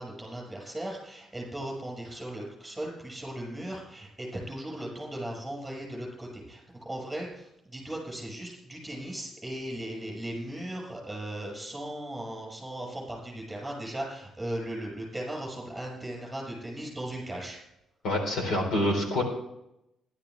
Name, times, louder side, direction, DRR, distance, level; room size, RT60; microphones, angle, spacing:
voice 1, 0.0-17.6, right 1 dB, 5° right, -2 dB, 6.1 m, -37 dB
voice 2, 18.0-19.2, left 1 dB, 55° left, 1 dB, 3.8 m, -26 dB
14.5 x 12.0 x 3.5 m, 0.83 s
cardioid pair, 175°, 0 cm